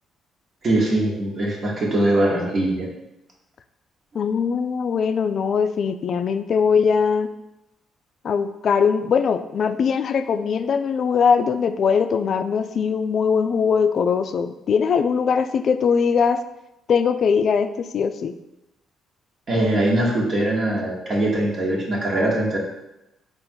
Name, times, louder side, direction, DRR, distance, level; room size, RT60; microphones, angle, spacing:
voice 1, 0.6-2.9 19.5-22.6, right 1 dB, 50° right, -2 dB, 1.1 m, -21 dB
voice 2, 4.1-7.3 8.2-16.4 16.9-18.3, left 6 dB, 60° left, 9 dB, 0.3 m, -21 dB
3.7 x 2.5 x 4.4 m, 0.91 s
supercardioid pair, 55°, 0 cm